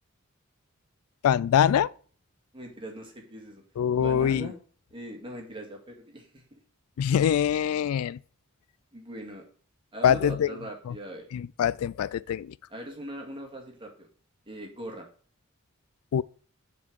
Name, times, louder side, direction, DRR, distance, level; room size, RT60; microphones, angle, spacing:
voice 1, 1.2-1.9 3.8-4.5 7.0-8.2 10.0-10.5 10.9-11.0 11.3-12.5 16.1-16.2, left 9 dB, 85° left, 0.3 m, -24 dB
voice 2, 2.5-3.6 4.0-4.6 4.9-6.6 8.9-9.4 9.9-11.3 12.7-14.1 14.5-15.1, right 1 dB, 25° right, 2.1 m, -40 dB
7.1 x 4.4 x 6.2 m
head